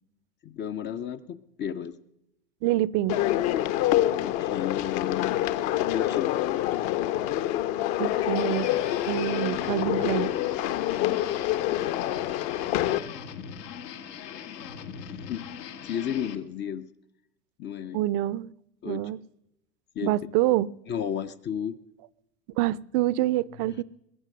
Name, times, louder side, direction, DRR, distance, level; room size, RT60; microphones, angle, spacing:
voice 1, 0.4-2.0 4.2-5.4 5.9-6.3 10.9-11.3 15.0-15.5 15.8-16.9 17.6-18.0 18.8-19.1 20.0-20.2 20.9-21.8, left 9 dB, 25° left, 0.4 m, -33 dB
voice 2, 2.6-3.2 8.0-8.7 9.1-10.3 17.9-18.5 18.8-19.2 20.0-20.7 22.6-23.8, right 15 dB, 45° right, 0.6 m, -26 dB
sound 1, 3.1-13.0, left 13 dB, 50° left, 0.9 m, -26 dB
sound 2, 8.4-16.4, left 8 dB, 80° left, 1.6 m, -40 dB
21.5 x 8.2 x 6.3 m
hypercardioid pair, 110°, 48 cm